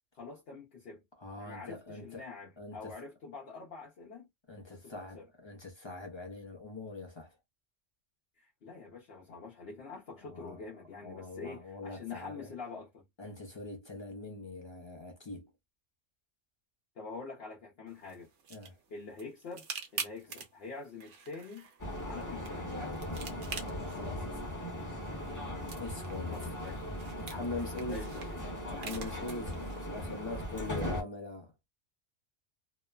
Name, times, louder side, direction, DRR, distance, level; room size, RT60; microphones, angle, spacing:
voice 1, 0.1-1.0 1.4-4.3 4.7-5.3 8.4-13.0 17.0-18.3 18.9-19.6 19.9-21.7 22.0-22.6 26.3-26.9 27.9-28.4 30.4-30.5, left 4 dB, 55° left, 0.9 m, -45 dB
voice 2, 1.2-2.3 2.6-3.0 4.5-7.3 10.2-10.6 11.0-12.5 13.2-15.5 18.5-18.8 22.9-23.0 23.2-24.5 25.8-26.5 27.2-31.5, left 2 dB, 30° left, 0.5 m, -43 dB
sound 1, 17.9-30.9, right 5 dB, 75° right, 1.1 m, -47 dB
sound 2, 21.8-31.0, left 1 dB, 15° left, 0.9 m, -39 dB
2.9 x 2.1 x 2.2 m
omnidirectional pair, 1.3 m